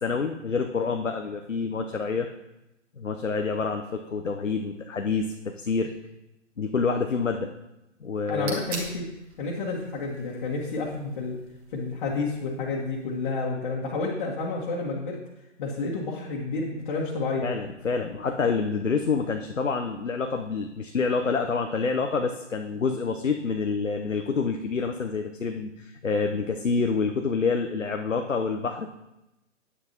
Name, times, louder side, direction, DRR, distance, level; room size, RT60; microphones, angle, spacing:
voice 1, 0.0-2.3 3.0-5.3 5.6-5.9 6.6-7.5 8.0-8.6 17.4-28.9, left 4 dB, 80° left, 4 dB, 0.9 m, -27 dB
sound 1, 8.0-13.2, right 3 dB, 30° right, 2.1 m, -43 dB
voice 2, 8.3-9.0 9.4-11.4 11.7-15.2 15.6-17.5, left 3 dB, 40° left, -4 dB, 1.8 m, -30 dB
9.9 x 9.6 x 3.0 m, 0.92 s
figure-of-eight pair, 125°, 38 cm